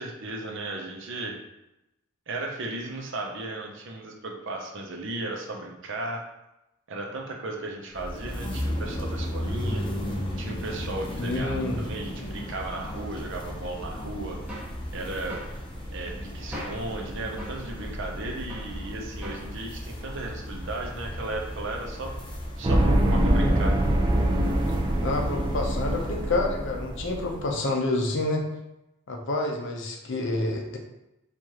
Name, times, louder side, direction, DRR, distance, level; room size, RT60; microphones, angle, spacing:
voice 1, 0.0-1.4 2.3-6.2 6.9-9.8 10.4-14.4 14.9-15.4 15.9-22.1 22.6-23.8, right 2 dB, 60° right, 1 dB, 0.7 m, -35 dB
sound 1, 7.9-26.5, equal, 25° left, 0.6 m, -35 dB
voice 2, 11.2-11.8 25.0-28.4 29.1-30.8, left 2 dB, 60° left, 1 dB, 0.6 m, -28 dB
sound 2, 14.5-14.8 15.3-15.6 16.5-16.9 17.4-17.7 18.5-18.8 19.2-19.5, equal, 5° right, 0.9 m, -39 dB
sound 3, 22.6-27.4, right 1 dB, 20° right, 0.3 m, -24 dB
4.6 x 2.5 x 2.9 m, 0.92 s
head